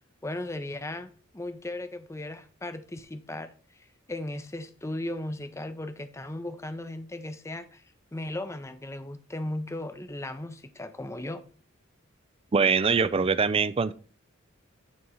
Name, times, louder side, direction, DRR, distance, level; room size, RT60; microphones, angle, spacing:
voice 1, 0.2-7.8 8.1-11.4, left 1 dB, 15° left, 0.6 m, -36 dB
voice 2, 12.5-13.9, right 5 dB, 25° right, 0.4 m, -23 dB
9.6 x 3.6 x 5.5 m
head